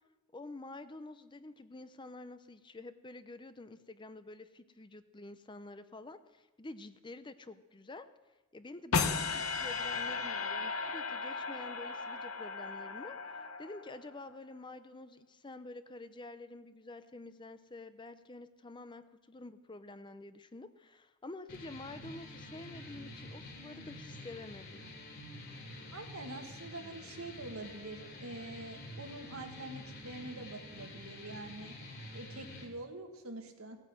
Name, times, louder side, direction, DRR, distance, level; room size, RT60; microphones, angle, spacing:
voice 1, 0.3-8.1 8.5-24.8, left 2 dB, 20° left, 11 dB, 0.5 m, -48 dB
sound 1, 8.9-14.1, left 4 dB, 80° left, 0.9 m, -35 dB
sound 2, 21.5-32.6, left 1 dB, 45° left, 2.9 m, -48 dB
voice 2, 25.9-31.7 32.1-33.8, right 2 dB, 80° right, 4 dB, 1.8 m, -45 dB
17.0 x 9.0 x 7.7 m, 1.1 s
head